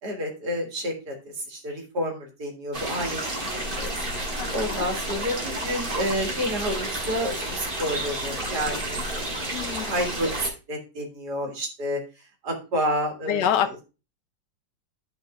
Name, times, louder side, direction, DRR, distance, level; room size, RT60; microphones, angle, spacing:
voice 1, 0.0-1.1 1.5-3.2 3.5-3.9 4.5-9.5 9.9-12.0 12.4-13.5, equal, 65° right, 1 dB, 2.5 m, -29 dB
sound 1, 2.7-10.5, right 1 dB, 30° right, 1.8 m, -31 dB
voice 2, 4.4-4.9 9.5-9.9 13.3-13.8, left 9 dB, 75° left, 11 dB, 1.3 m, -27 dB
13.5 x 5.1 x 2.3 m, 0.30 s
omnidirectional pair, 1.9 m